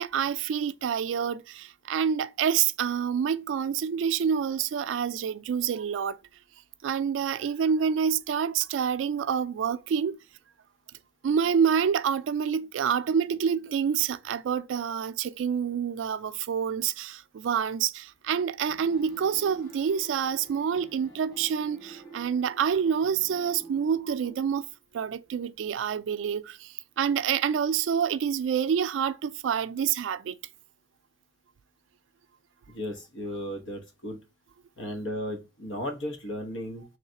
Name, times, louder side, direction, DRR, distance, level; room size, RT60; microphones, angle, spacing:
voice 1, 0.0-6.2 6.8-10.2 11.2-24.7 24.9-30.4, right 7 dB, 85° right, 0.3 m, -27 dB
sound 1, 18.7-24.4, right 3 dB, 20° left, 1.7 m, -48 dB
voice 2, 32.7-34.2 34.8-36.8, left 1 dB, 80° left, 1.1 m, -35 dB
3.8 x 3.2 x 2.8 m
head